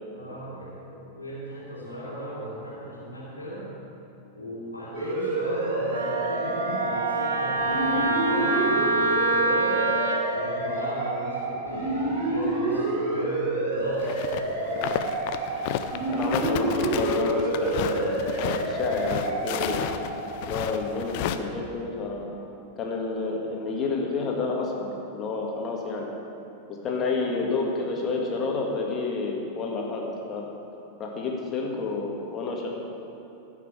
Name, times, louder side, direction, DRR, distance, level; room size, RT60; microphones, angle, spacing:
voice 1, 0.1-3.7 4.3-9.9 10.3-15.0, equal, 80° left, -7 dB, 2.6 m, -37 dB
sound 1, 4.9-21.3, right 2 dB, 55° right, 2.1 m, -28 dB
Wind instrument woodwind instrument, 5.9-10.2, right 2 dB, 75° right, 0.9 m, -26 dB
sound 2, 14.0-14.4 14.7-21.4, left 10 dB, 45° left, 0.5 m, -32 dB
voice 2, 16.1-19.9 20.5-22.4 22.8-26.1 26.8-30.4 31.0-32.7, left 3 dB, 30° left, -1 dB, 2.0 m, -29 dB
14.5 x 6.1 x 6.3 m, 2.9 s
figure-of-eight pair, 90°, 0 cm